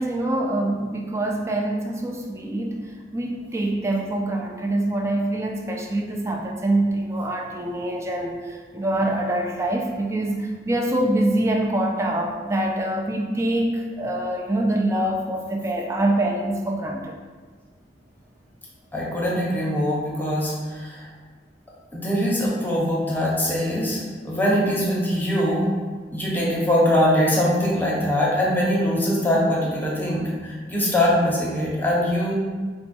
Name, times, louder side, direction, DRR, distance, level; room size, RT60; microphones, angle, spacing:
voice 1, 0.0-2.8 3.1-17.2, right 1 dB, 15° right, 1 dB, 0.4 m, -25 dB
voice 2, 18.9-21.0 21.9-25.6 26.1-32.3, equal, 10° left, -5 dB, 0.8 m, -22 dB
4.1 x 2.2 x 4.2 m, 1.5 s
head